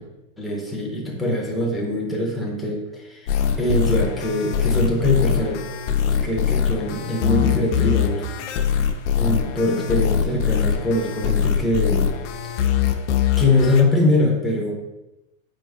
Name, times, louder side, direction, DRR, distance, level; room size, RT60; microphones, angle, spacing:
voice 1, 0.4-5.6 6.1-8.5 9.1-12.1 13.4-14.7, left 1 dB, ahead, -3 dB, 0.6 m, -22 dB
sound 1, 3.3-13.8, left 8 dB, 65° left, 0.6 m, -22 dB
4.9 x 4.6 x 2.3 m, 0.96 s
hypercardioid pair, 135°, 39 cm